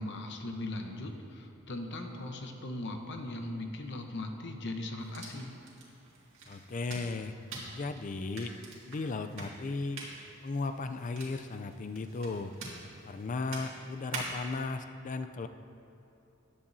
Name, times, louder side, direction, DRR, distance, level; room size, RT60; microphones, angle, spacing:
voice 1, 0.0-5.5, left 1 dB, 60° left, 4 dB, 0.9 m, -39 dB
sound 1, 5.0-14.6, right 2 dB, 65° right, 2.1 m, -46 dB
voice 2, 6.5-7.4 7.7-8.5 8.9-10.0 10.4-12.5 13.1-15.5, left 3 dB, 40° left, 9 dB, 0.4 m, -36 dB
14.5 x 10.0 x 2.7 m, 2.8 s
head